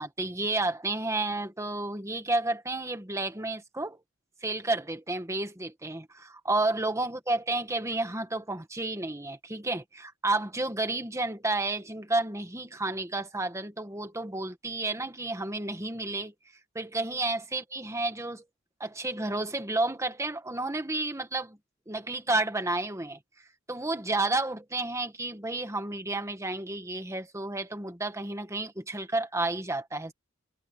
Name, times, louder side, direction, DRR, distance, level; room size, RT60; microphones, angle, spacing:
voice 1, 0.0-4.0 4.4-16.3 16.7-18.4 18.8-21.6 21.9-23.2 23.7-30.1, right 2 dB, 15° right, 1.6 m, -31 dB
head